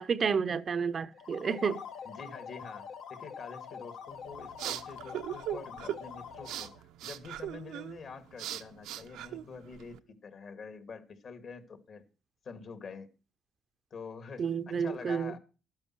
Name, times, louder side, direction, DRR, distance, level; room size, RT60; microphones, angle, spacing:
voice 1, 0.0-1.8 14.4-15.3, right 6 dB, 40° right, 0.6 m, -30 dB
sound 1, 1.1-6.8, left 7 dB, 75° left, 1.6 m, -45 dB
voice 2, 2.1-12.0 12.4-13.1 13.9-15.4, left 5 dB, 50° left, 2.1 m, -46 dB
sound 2, 4.1-10.0, right 12 dB, 85° right, 0.8 m, -40 dB
12.5 x 10.5 x 4.6 m
cardioid pair, 105°, 0 cm